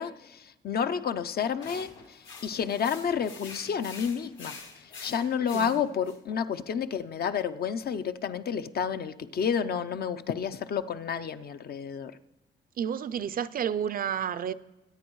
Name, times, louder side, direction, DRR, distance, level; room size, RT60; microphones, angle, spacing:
voice 1, 0.0-12.2, left 7 dB, 50° left, 0.6 m, -30 dB
sound 1, 1.6-6.2, left 4 dB, 70° left, 1.9 m, -46 dB
voice 2, 12.8-14.5, right 8 dB, 45° right, 0.4 m, -30 dB
23.5 x 8.9 x 3.1 m
cardioid pair, 90°, 20 cm